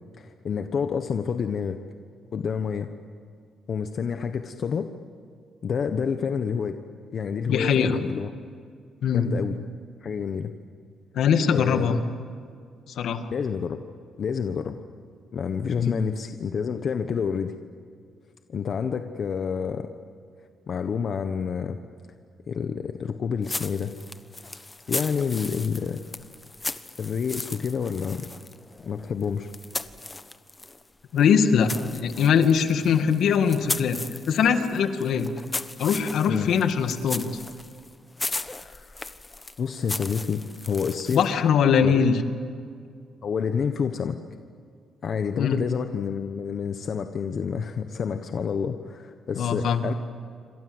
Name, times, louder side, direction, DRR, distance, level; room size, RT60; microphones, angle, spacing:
voice 1, 0.2-1.8 2.3-2.9 3.7-4.9 5.6-6.8 7.1-8.3 9.1-9.6 10.0-10.5 11.5-12.0 13.3-13.8 14.2-14.8 15.3-17.5 18.5-19.9 20.7-21.8 22.5-23.9 24.9-26.0 27.0-28.3 28.8-29.5 36.3-36.5 38.6-39.1 39.6-41.3 41.8-42.0 43.2-44.2 45.0-49.9, left 6 dB, 55° left, 7 dB, 1.2 m, -28 dB
voice 2, 7.5-8.0 9.0-9.3 11.1-12.0 13.0-13.3 15.8-16.0 31.1-34.0 34.3-35.3 35.8-37.3 41.1-42.2 45.3-45.6 49.3-49.8, left 7 dB, 70° left, 7 dB, 2.1 m, -22 dB
sound 1, 23.4-30.8 31.2-41.4, left 2 dB, 20° left, 1.2 m, -37 dB
28.5 x 25.5 x 8.0 m, 2.2 s
cardioid pair, 90°, 0 cm